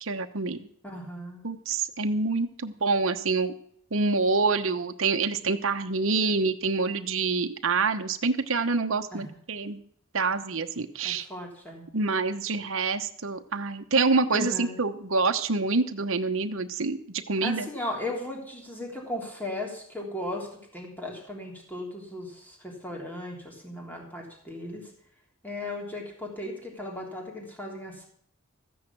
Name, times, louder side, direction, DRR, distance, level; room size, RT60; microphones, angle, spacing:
voice 1, 0.0-0.7 1.4-3.5 3.9-9.8 10.1-11.3 11.9-17.7, right 4 dB, 65° right, 6 dB, 1.0 m, -26 dB
voice 2, 0.8-1.4 9.1-9.3 11.0-11.9 14.3-14.8 17.4-24.9 25.4-28.1, left 1 dB, 10° left, -1 dB, 3.3 m, -36 dB
14.5 x 9.5 x 6.0 m, 0.65 s
head